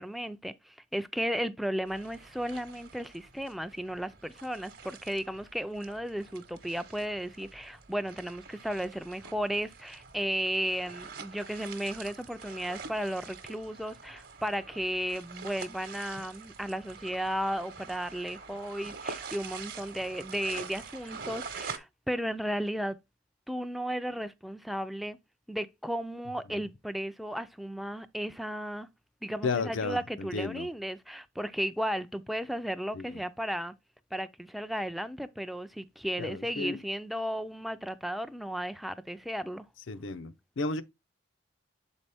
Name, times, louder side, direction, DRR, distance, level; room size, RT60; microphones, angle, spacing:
voice 1, 0.0-23.0 23.5-25.2 25.5-28.9 29.2-33.7 34.1-39.7, equal, ahead, 0.3 m, -34 dB
sound 1, 1.9-21.8, right 5 dB, 50° right, 0.9 m, -46 dB
voice 2, 29.4-30.7 32.9-33.2 36.2-36.8 39.9-40.8, left 3 dB, 80° left, 0.6 m, -33 dB
7.4 x 4.1 x 3.4 m
head